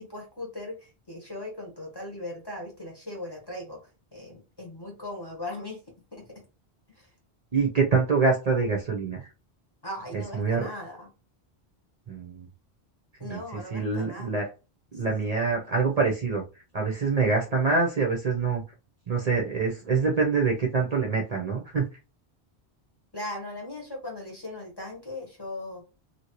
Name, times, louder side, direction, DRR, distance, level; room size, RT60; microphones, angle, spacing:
voice 1, 0.0-3.8 4.1-5.8 6.1-6.3 6.9-7.1 9.8-11.1 13.2-14.3 14.9-15.2 23.1-25.8, left 1 dB, 25° left, 0 dB, 1.1 m, -38 dB
voice 2, 7.5-9.3 10.1-10.7 12.1-12.4 13.2-14.5 14.9-16.4 16.7-18.6 19.1-21.9, right 4 dB, 45° right, 0 dB, 0.7 m, -25 dB
2.9 x 2.7 x 2.9 m, 0.30 s
omnidirectional pair, 1.1 m